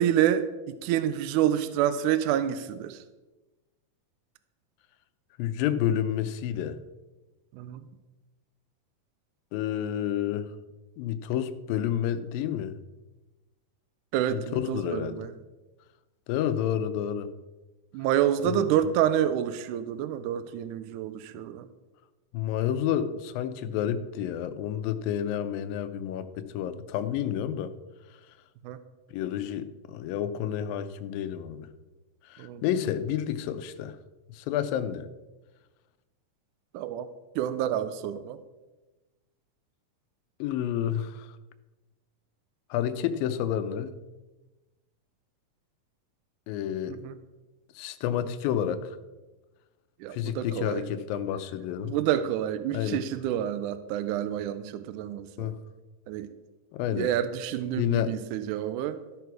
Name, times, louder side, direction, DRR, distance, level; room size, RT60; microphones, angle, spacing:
voice 1, 0.0-3.0 7.5-7.9 14.1-15.3 17.9-21.7 28.6-28.8 32.4-32.6 36.7-37.1 37.4-38.4 46.9-47.2 50.0-50.8 51.8-55.5 56.1-56.3 56.9-59.0, right 10 dB, 80° right, 12 dB, 1.8 m, -28 dB
voice 2, 5.4-6.8 9.5-10.5 11.0-12.8 14.3-15.2 16.3-17.3 18.5-18.7 22.3-27.7 29.1-31.7 32.3-34.0 34.3-35.1 40.4-41.3 42.7-44.0 46.5-47.0 47.8-49.0 50.1-51.9 52.7-53.0 55.4-55.6 56.7-57.1 57.8-58.1, left 10 dB, 90° left, 11 dB, 2.4 m, -30 dB
14.0 x 6.0 x 4.6 m, 1.1 s
omnidirectional pair, 4.0 m